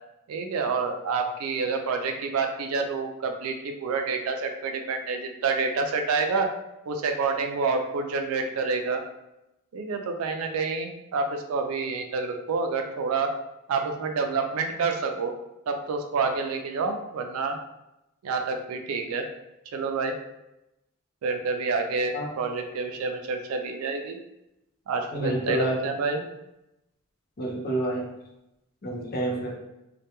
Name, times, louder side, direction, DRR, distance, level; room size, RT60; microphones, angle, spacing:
voice 1, 0.3-6.5 6.9-9.0 9.7-13.3 13.7-15.3 15.7-17.6 18.2-19.2 19.7-20.2 21.2-24.2 24.9-26.2, right 4 dB, 80° right, 4 dB, 0.4 m, -28 dB
voice 2, 25.1-25.8 27.4-28.0 28.8-29.5, right 1 dB, 50° left, -2 dB, 0.6 m, -28 dB
2.2 x 2.2 x 2.9 m, 0.90 s
head